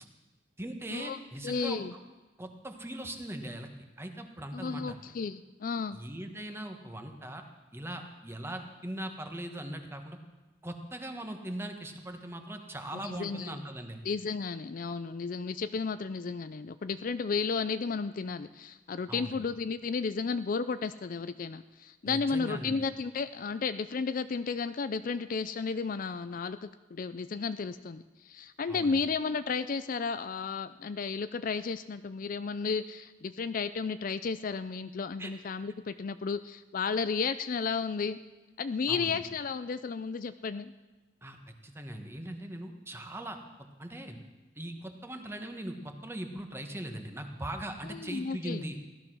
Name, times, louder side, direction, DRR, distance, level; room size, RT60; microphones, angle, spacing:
voice 1, 0.6-1.8 2.4-3.7 4.0-5.0 5.9-7.4 7.7-10.2 10.6-14.0 19.1-19.4 22.0-22.8 28.7-29.0 35.2-35.3 38.9-39.2 41.2-41.4 41.6-43.4 43.8-44.2 44.6-48.8, right 1 dB, 15° right, 5 dB, 1.3 m, -40 dB
voice 2, 1.4-1.9 4.5-6.0 13.0-13.6 14.0-38.2 38.6-40.7 47.9-48.6, left 5 dB, 45° left, 12 dB, 0.4 m, -33 dB
16.0 x 12.0 x 6.2 m, 1.2 s
head